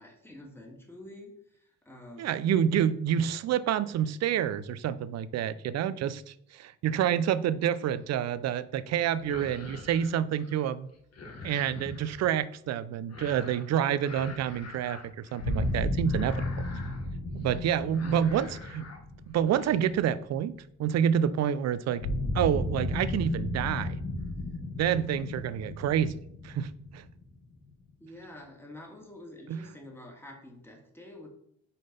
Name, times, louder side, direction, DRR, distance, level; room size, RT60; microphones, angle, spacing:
voice 1, 0.0-2.5 17.9-18.2 28.0-31.3, left 1 dB, 10° left, 0 dB, 1.7 m, -48 dB
voice 2, 2.2-10.9 11.4-16.7 17.3-18.8 19.3-20.5 20.8-22.1 22.3-24.0 24.8-26.2 26.4-27.0 29.5-29.6, right 9 dB, 60° right, 16 dB, 0.5 m, -28 dB
sound 1, 7.9-8.3 9.1-10.7 10.9-12.3 13.1-13.7 14.0-15.7 16.1-17.1 17.4-17.6 17.9-19.0 19.3-19.8, left 3 dB, 55° left, 1.4 m, -46 dB
sound 2, 15.4-20.4 22.0-27.7, left 1 dB, 70° left, 2.6 m, -34 dB
5.5 x 3.8 x 5.2 m, 0.69 s
cardioid pair, 90°, 30 cm